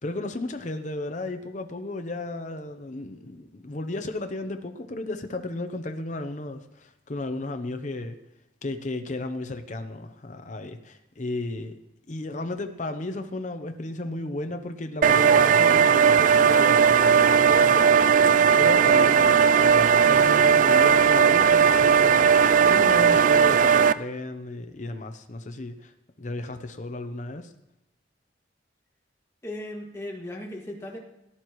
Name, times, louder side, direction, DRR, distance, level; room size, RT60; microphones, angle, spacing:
voice 1, 0.0-8.2 8.6-11.8 12.1-22.3 22.7-25.9 26.2-27.5, left 2 dB, 40° left, 0.7 m, -34 dB
sound 1, 15.0-23.9, right 7 dB, 45° right, 0.3 m, -18 dB
voice 2, 29.4-31.0, left 1 dB, 15° left, 2.1 m, -36 dB
18.0 x 11.5 x 3.1 m
head